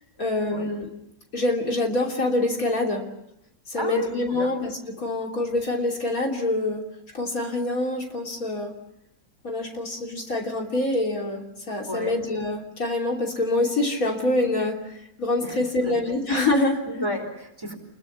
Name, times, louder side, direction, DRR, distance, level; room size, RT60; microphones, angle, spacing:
voice 1, 0.2-0.9 1.3-3.1 3.7-6.8 7.1-8.7 9.4-16.8, left 2 dB, 65° left, 1 dB, 3.5 m, -25 dB
voice 2, 3.7-4.5 11.9-12.1 15.4-16.3 16.9-17.7, equal, 15° right, 3 dB, 4.3 m, -32 dB
29.0 x 22.0 x 7.2 m, 0.83 s
omnidirectional pair, 1.6 m